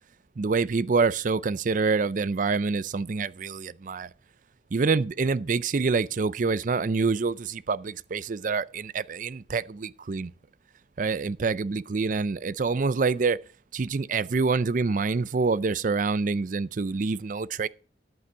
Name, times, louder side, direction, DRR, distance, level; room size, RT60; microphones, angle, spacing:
voice 1, 0.4-4.1 4.7-10.3 11.0-13.4 13.7-17.7, right 4 dB, 45° right, 0.4 m, -26 dB
11.0 x 8.7 x 4.6 m
head